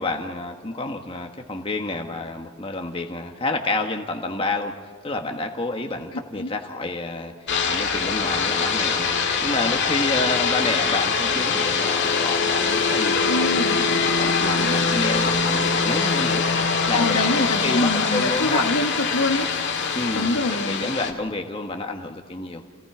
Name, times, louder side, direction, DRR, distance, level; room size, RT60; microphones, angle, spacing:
voice 1, 0.0-4.7 5.0-7.3 7.6-9.1 9.4-13.9 14.2-16.4 16.9-18.7 19.9-20.3 20.6-22.6, left 2 dB, 25° left, 3 dB, 1.4 m, -29 dB
sound 1, 7.5-21.1, left 5 dB, 50° left, 2.1 m, -23 dB
voice 2, 13.2-13.8 16.9-19.5 20.1-20.9, left 2 dB, 90° left, 6 dB, 1.3 m, -25 dB
29.5 x 18.0 x 5.0 m, 1.5 s
head